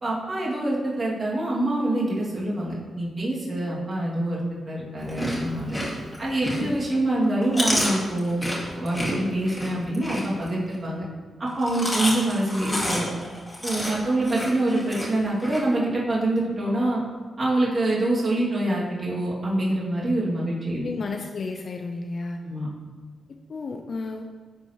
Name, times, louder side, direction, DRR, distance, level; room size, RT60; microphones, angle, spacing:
voice 1, 0.0-5.8 6.2-8.4 8.7-11.0 11.4-13.1 13.6-17.0 17.4-20.8 22.4-22.7, right 1 dB, 40° right, -6 dB, 2.3 m, -25 dB
Chewing mastication, 5.0-6.8 7.2-10.8 11.5-15.6, left 1 dB, 20° left, 2.2 m, -29 dB
voice 2, 20.7-22.4 23.5-24.2, left 3 dB, 55° left, 4 dB, 0.5 m, -32 dB
11.0 x 4.3 x 3.0 m, 1.4 s
cardioid pair, 65°, 0 cm